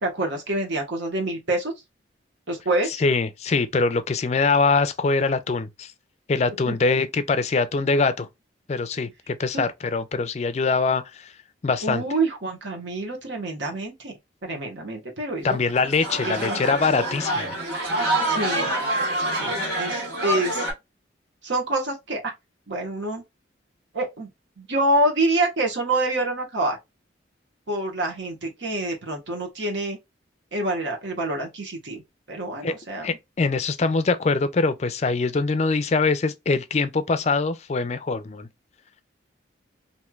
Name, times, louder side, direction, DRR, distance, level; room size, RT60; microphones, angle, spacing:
voice 1, 0.0-1.7 2.5-3.0 6.7-6.8 11.8-14.1 14.4-15.6 16.2-16.6 18.3-18.7 19.4-20.7 21.4-22.3 22.7-23.2 23.9-24.3 24.6-26.8 27.7-30.0 30.5-32.0 32.3-33.1, right 2 dB, 80° right, 1.1 m, -26 dB
voice 2, 2.9-5.9 6.3-8.3 8.7-11.3 11.6-12.0 15.4-17.6 32.6-32.7 33.0-38.5, left 4 dB, 35° left, 0.4 m, -23 dB
sound 1, 15.5-20.7, right 1 dB, 65° right, 1.6 m, -26 dB
3.1 x 2.7 x 2.3 m
head